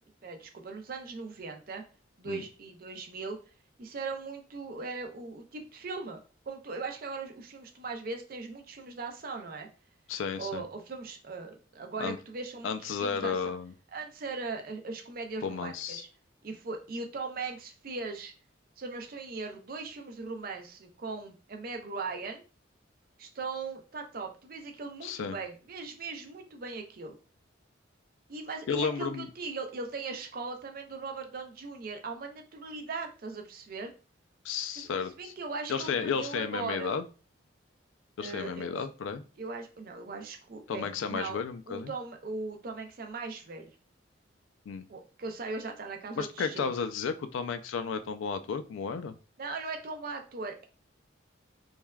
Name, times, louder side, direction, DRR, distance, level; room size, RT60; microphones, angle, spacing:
voice 1, 0.2-1.8 2.2-3.4 3.8-6.2 6.5-9.7 10.4-13.4 13.9-16.1 16.4-18.3 18.8-22.4 23.2-27.2 28.3-33.9 34.7-34.9 35.2-37.0 38.2-38.8 39.4-41.4 41.7-43.7 44.9-46.7 49.4-50.6, right 3 dB, 50° right, 4 dB, 0.5 m, -39 dB
voice 2, 10.1-10.6 12.0-12.2 12.6-13.7 15.4-16.0 25.0-25.4 28.7-29.3 34.4-35.3 35.7-37.0 38.2-39.2 40.7-41.9 44.7-44.8 46.2-49.1, left 6 dB, 80° left, 10 dB, 0.3 m, -33 dB
3.2 x 2.2 x 2.2 m, 0.35 s
head